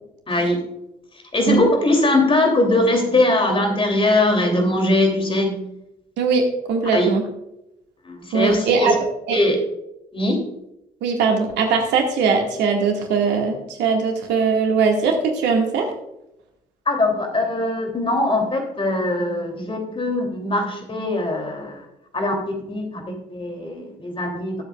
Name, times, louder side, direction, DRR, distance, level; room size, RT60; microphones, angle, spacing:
voice 1, 0.3-0.6 1.3-5.6 6.9-7.1 8.0-8.9 9.3-9.6 10.1-10.4 16.9-21.8 22.1-22.3 22.7-23.0 23.3-24.5, left 2 dB, 25° left, 2 dB, 2.9 m, -21 dB
voice 2, 6.2-7.2 8.3-8.9 9.3-9.4 11.0-15.9, right 5 dB, 60° right, 2 dB, 1.9 m, -20 dB
19.5 x 8.0 x 2.4 m, 0.85 s
figure-of-eight pair, 50°, 20 cm